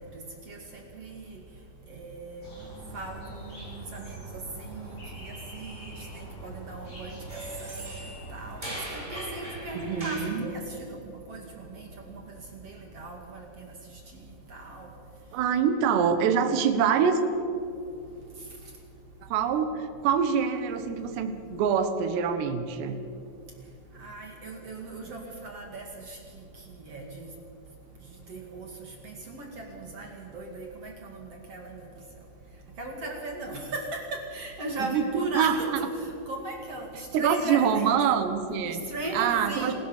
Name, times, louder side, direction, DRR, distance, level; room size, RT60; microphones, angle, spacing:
voice 1, 0.5-1.3 1.9-2.5 2.9-4.2 4.6-7.2 7.6-8.0 8.3-11.0 11.3-12.2 12.5-13.7 14.5-14.9 24.0-26.2 26.8-27.3 28.3-28.7 29.0-31.9 32.8-38.0 38.7-39.7, right 2 dB, 45° right, 1 dB, 2.4 m, -38 dB
sound 1, 2.4-10.1, right 2 dB, 20° left, 8.3 m, -43 dB
sound 2, 7.3-10.4, right 1 dB, 10° right, 5.5 m, -40 dB
voice 2, 9.8-10.5 15.3-17.2 19.2-23.0 34.8-35.6 37.1-38.8 39.1-39.7, right 7 dB, 70° right, 8 dB, 3.3 m, -25 dB
27.5 x 16.5 x 7.3 m, 2.6 s
omnidirectional pair, 5.4 m